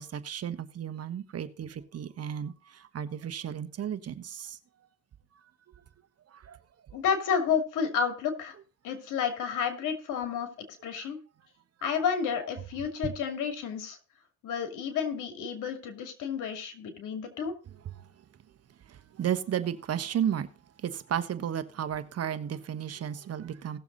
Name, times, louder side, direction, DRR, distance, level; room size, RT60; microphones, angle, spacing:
voice 1, 0.0-4.6 6.3-6.6 11.0-11.1 17.8-18.1 18.9-20.5 20.8-23.8, right 9 dB, 55° right, 1.2 m, -33 dB
voice 2, 6.9-8.5 8.8-10.5 10.8-11.2 11.8-14.0 14.4-17.5, left 7 dB, 90° left, 2.4 m, -30 dB
17.5 x 7.0 x 4.0 m
cardioid pair, 90°, 30 cm